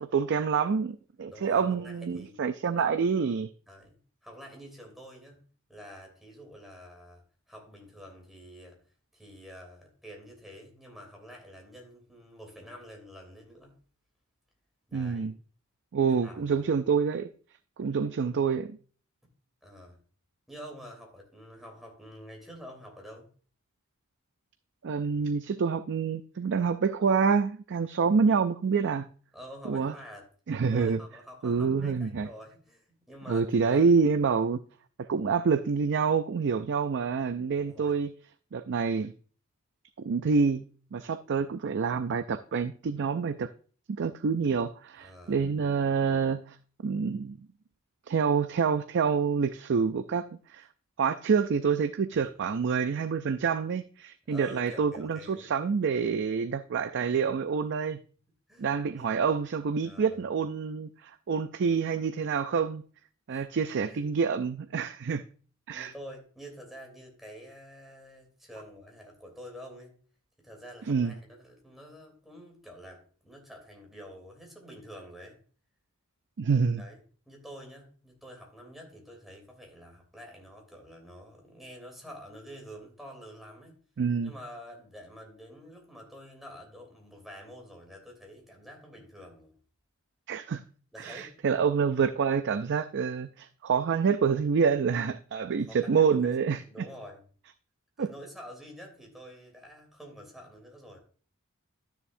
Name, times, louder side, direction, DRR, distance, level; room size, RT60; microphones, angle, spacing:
voice 1, 0.0-3.5 14.9-15.3 15.9-17.3 17.8-18.8 24.8-29.1 29.7-29.9 30.5-31.0 31.4-32.3 33.3-34.6 35.1-38.1 38.5-39.1 40.0-40.6 40.9-43.5 44.0-46.6 46.8-47.4 48.1-50.7 51.0-58.0 58.6-62.8 63.3-65.2 65.7-65.9 70.9-71.1 76.4-76.8 84.0-84.3 90.3-90.6 91.0-96.9 98.0-98.1, right 5 dB, 55° right, 0.4 m, -27 dB
voice 2, 1.2-2.4 2.6-2.9 3.7-5.4 5.7-8.8 9.1-13.8 14.9-15.3 16.1-16.4 19.6-20.0 20.5-23.3 29.3-30.3 30.7-34.0 37.5-38.0 45.0-45.4 52.1-52.3 54.3-55.5 58.5-58.7 58.9-59.2 59.8-60.2 63.3-64.1 65.7-70.0 70.4-75.4 76.8-77.0 77.3-83.7 84.2-89.6 90.9-91.4 95.7-96.3 96.6-97.2 98.0-101.0, equal, ahead, 3.2 m, -48 dB
12.0 x 7.0 x 2.6 m
head